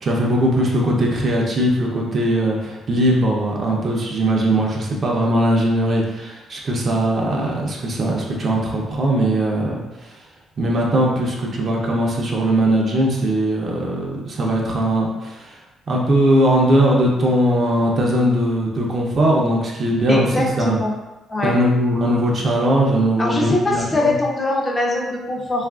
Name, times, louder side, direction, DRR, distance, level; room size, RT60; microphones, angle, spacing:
voice 1, 0.0-9.8 10.6-15.5 15.9-20.8 21.4-24.2, right 1 dB, 50° right, -2 dB, 0.6 m, -19 dB
voice 2, 20.1-20.9 21.3-21.5 23.2-25.7, left 2 dB, 25° left, -2 dB, 0.5 m, -22 dB
2.8 x 2.4 x 2.3 m, 1.1 s
cardioid pair, 90°, 0 cm